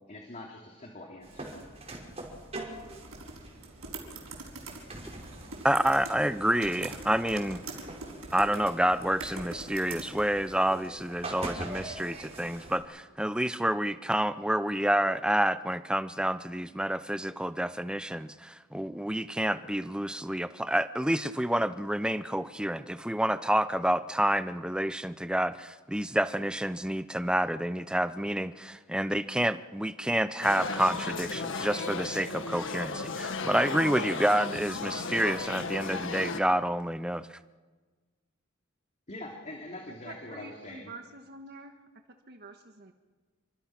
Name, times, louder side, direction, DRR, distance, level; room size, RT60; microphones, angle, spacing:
voice 1, 0.1-1.6 39.1-40.9, left 1 dB, 35° left, 0 dB, 2.9 m, -43 dB
sound 1, 1.2-12.8, right 2 dB, 30° right, 5.7 m, -44 dB
sound 2, 2.7-10.6, right 3 dB, 85° right, 5.9 m, -44 dB
voice 2, 5.6-7.6 8.3-37.3, right 1 dB, 5° right, 13 dB, 0.7 m, -28 dB
sound 3, 30.4-36.4, left 3 dB, 65° left, 1.7 m, -35 dB
voice 3, 40.0-41.8 42.3-42.9, right 2 dB, 50° right, 5 dB, 1.6 m, -47 dB
29.5 x 24.5 x 6.0 m, 1.4 s
head